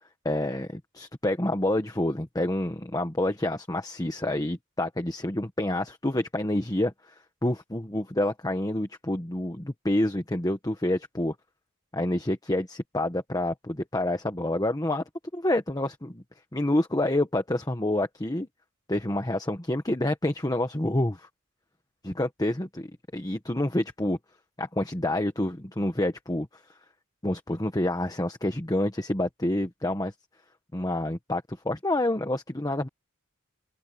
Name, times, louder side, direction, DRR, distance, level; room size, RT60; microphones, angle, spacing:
voice 1, 0.2-7.1 7.4-11.3 11.9-15.0 15.3-16.2 16.5-18.5 18.9-21.3 22.0-22.7 23.1-24.2 24.6-26.5 27.2-30.1 30.7-32.9, left 1 dB, 20° left, 1.3 m, -28 dB
open air
head